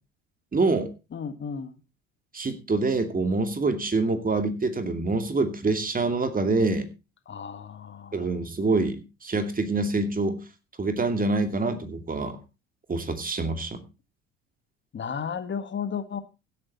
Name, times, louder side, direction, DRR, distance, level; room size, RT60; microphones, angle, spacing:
voice 1, 0.5-0.9 2.3-6.9 8.1-10.4 10.8-12.4 12.9-13.8, right 3 dB, 20° right, 8 dB, 2.6 m, -26 dB
voice 2, 1.1-1.8 7.3-8.3 14.9-16.2, left 7 dB, 30° left, 11 dB, 1.7 m, -34 dB
16.0 x 8.6 x 4.2 m, 0.30 s
hypercardioid pair, 70°, 38 cm